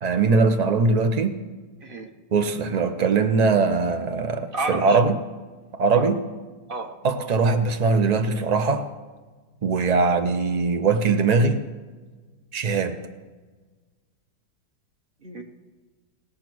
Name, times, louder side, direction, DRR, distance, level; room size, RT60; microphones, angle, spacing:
voice 1, 0.0-1.3 2.3-5.2 5.7-6.2 7.0-8.9 9.6-11.6 12.5-13.0, right 4 dB, 75° right, 7 dB, 0.3 m, -21 dB
voice 2, 1.8-2.2 4.5-5.0 6.0-6.1 6.7-7.0 15.2-15.4, right 2 dB, 40° right, 4 dB, 1.0 m, -31 dB
19.0 x 7.0 x 6.1 m, 1.3 s
omnidirectional pair, 1.9 m